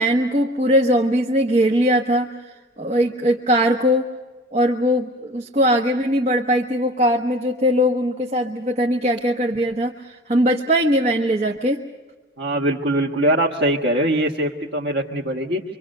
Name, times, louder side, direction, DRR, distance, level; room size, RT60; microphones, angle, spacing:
voice 1, 0.0-2.4 2.8-4.1 4.5-11.8, equal, 40° right, 2 dB, 1.2 m, -20 dB
voice 2, 12.4-15.6, right 1 dB, 75° right, -3 dB, 1.7 m, -22 dB
26.5 x 24.5 x 6.6 m, 1.3 s
head